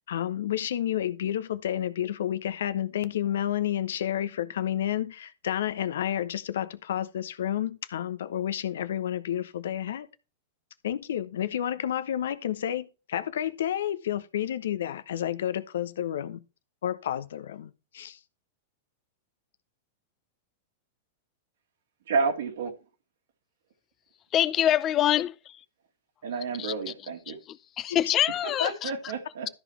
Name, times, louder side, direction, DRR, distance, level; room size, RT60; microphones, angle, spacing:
voice 1, 0.0-10.1 10.8-16.4 16.8-18.2 28.6-28.7, left 11 dB, 70° left, 0.9 m, -30 dB
voice 2, 22.1-22.7 26.2-27.4 28.4-29.5, right 4 dB, 70° right, 2.2 m, -30 dB
voice 3, 24.3-25.3 26.6-26.7 27.3-27.4 27.8-28.9, left 11 dB, 35° left, 0.6 m, -24 dB
13.0 x 5.0 x 4.4 m
figure-of-eight pair, 100°, 0 cm